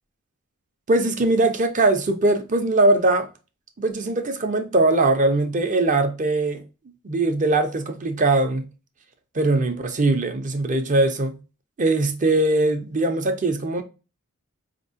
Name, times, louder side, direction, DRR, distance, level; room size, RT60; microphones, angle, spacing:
voice 1, 0.9-3.3 3.8-6.6 7.0-8.7 9.3-11.4 11.8-13.8, right 2 dB, 40° right, 0.6 m, -21 dB
4.3 x 2.9 x 2.7 m
head